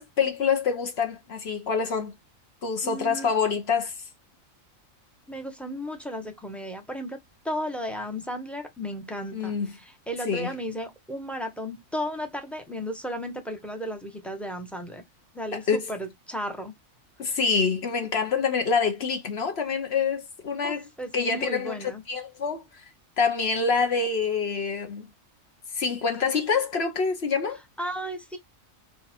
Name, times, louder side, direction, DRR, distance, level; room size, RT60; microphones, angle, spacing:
voice 1, 0.0-2.1 2.6-3.9 9.3-9.7 10.3-10.5 15.7-15.8 17.2-20.9 21.1-22.8 23.2-25.1 25.7-27.6, left 5 dB, 55° left, 1.1 m, -26 dB
voice 2, 2.8-3.3 5.3-7.2 7.4-15.0 15.3-16.7 20.6-22.0 27.8-28.4, equal, ahead, 0.7 m, -34 dB
4.1 x 2.5 x 4.2 m
omnidirectional pair, 1.4 m